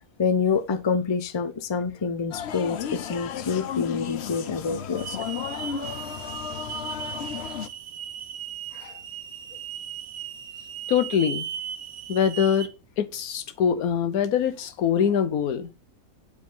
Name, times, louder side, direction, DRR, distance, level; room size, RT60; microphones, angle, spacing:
voice 1, 0.2-5.3, left 5 dB, 25° left, 0.6 m, -27 dB
sound 1, 2.3-7.7, left 8 dB, 60° left, 0.8 m, -33 dB
Hiss / Alarm, 5.0-12.7, right 9 dB, 75° right, 1.2 m, -37 dB
voice 2, 10.9-11.5 12.1-12.7 13.0-15.7, left 8 dB, 85° left, 1.3 m, -24 dB
9.5 x 4.9 x 5.6 m
omnidirectional pair, 1.5 m